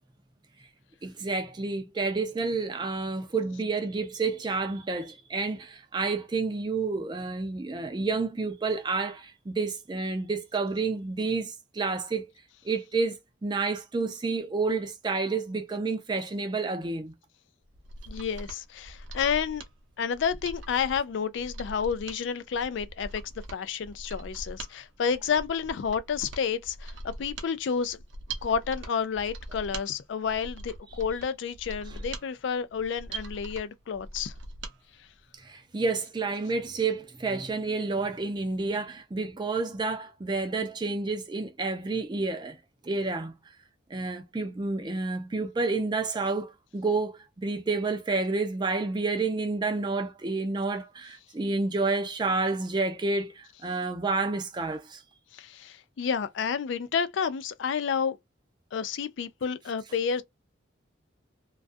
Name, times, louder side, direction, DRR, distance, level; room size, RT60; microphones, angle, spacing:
voice 1, 1.0-12.2 12.6-17.1 35.4-42.6 42.8-43.4 43.9-55.0, right 3 dB, 20° right, 0.4 m, -29 dB
Mechanisms, 17.7-34.8 35.1-35.2, right 2 dB, 70° right, 0.6 m, -42 dB
voice 2, 18.1-19.6 20.0-23.2 23.5-28.0 28.4-34.3 55.3-58.2 58.7-60.2, left 6 dB, 70° left, 0.3 m, -30 dB
2.3 x 2.2 x 2.4 m
head